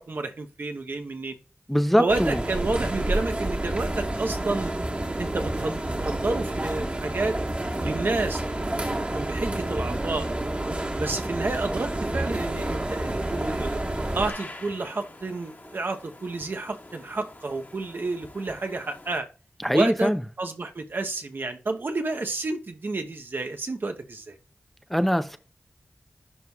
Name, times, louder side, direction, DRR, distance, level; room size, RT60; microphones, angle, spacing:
voice 1, 0.0-1.4 2.0-4.7 5.2-7.4 7.8-10.3 11.0-13.8 14.1-19.3 19.7-20.1 20.4-24.4, right 3 dB, 60° right, 0.8 m, -30 dB
voice 2, 1.7-2.4 19.6-20.2 24.9-25.4, equal, 5° left, 0.5 m, -22 dB
sound 1, 2.1-14.3, right 1 dB, 35° right, 1.4 m, -29 dB
sound 2, 12.7-19.2, left 2 dB, 50° left, 1.6 m, -46 dB
11.0 x 4.6 x 2.3 m
wide cardioid pair, 60°, 4 cm